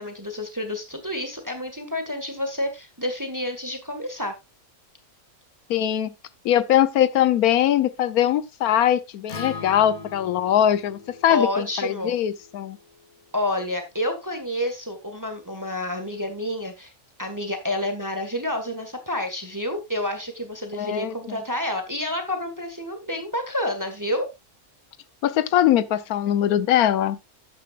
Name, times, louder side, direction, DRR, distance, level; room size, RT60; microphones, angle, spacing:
voice 1, 0.0-4.3 11.3-12.2 13.3-16.9 17.2-24.3, left 1 dB, 10° right, 1.5 m, -29 dB
voice 2, 5.7-6.1 6.4-12.8 20.8-21.4 25.2-27.2, left 11 dB, 75° left, 1.2 m, -21 dB
Acoustic guitar, 9.3-13.5, left 4 dB, 30° left, 0.9 m, -41 dB
12.0 x 9.3 x 2.4 m
omnidirectional pair, 1.6 m